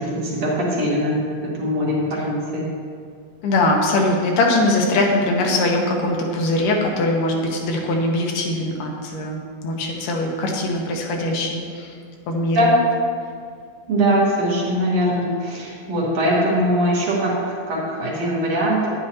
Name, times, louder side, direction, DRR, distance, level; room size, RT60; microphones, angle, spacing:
voice 1, 0.0-2.7 12.5-12.9 13.9-18.9, equal, 60° right, -4 dB, 2.3 m, -21 dB
voice 2, 3.4-11.9 12.3-12.6, left 2 dB, 80° left, 0 dB, 2.5 m, -21 dB
10.0 x 9.6 x 2.9 m, 2.1 s
omnidirectional pair, 3.8 m